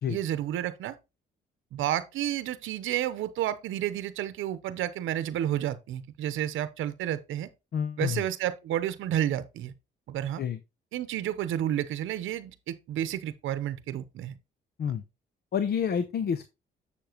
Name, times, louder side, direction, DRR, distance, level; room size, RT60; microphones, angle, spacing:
voice 1, 0.1-1.0 1.7-7.5 8.0-9.7 10.1-10.4 10.9-14.4, right 11 dB, 80° right, 0.8 m, -31 dB
voice 2, 7.7-8.2 10.4-10.6 14.8-15.0 15.5-16.5, left 7 dB, 55° left, 0.8 m, -28 dB
7.1 x 6.9 x 2.9 m
cardioid pair, 90°, 20 cm